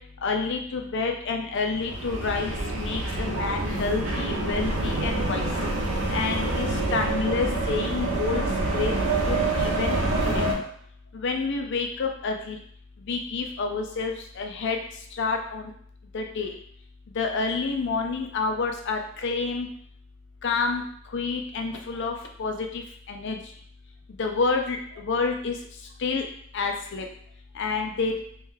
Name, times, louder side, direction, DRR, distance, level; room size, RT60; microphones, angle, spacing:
voice 1, 0.0-5.5 5.9-8.4 8.7-8.9 9.2-10.4 11.1-12.6 13.0-15.7 16.1-16.6 17.1-19.7 20.4-23.5 24.1-26.3 26.5-27.1 27.5-28.2, left 4 dB, 55° left, 4 dB, 0.4 m, -29 dB
sound 1, 1.7-10.5, right 2 dB, 70° right, 0.9 m, -27 dB
3.1 x 3.1 x 3.6 m, 0.64 s
head